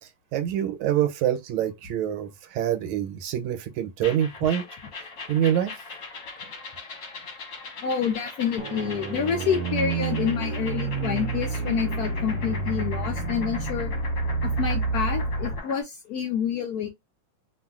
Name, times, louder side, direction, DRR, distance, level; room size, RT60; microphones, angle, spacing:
voice 1, 0.3-4.6 5.3-5.7, right 10 dB, 90° right, 1.5 m, -25 dB
sound 1, 4.0-15.8, left 4 dB, 50° left, 1.2 m, -40 dB
voice 2, 7.8-13.9 14.4-16.9, left 7 dB, 80° left, 0.8 m, -28 dB
sound 2, 8.6-15.6, right 3 dB, 75° right, 1.1 m, -29 dB
3.0 x 2.6 x 2.3 m
omnidirectional pair, 2.2 m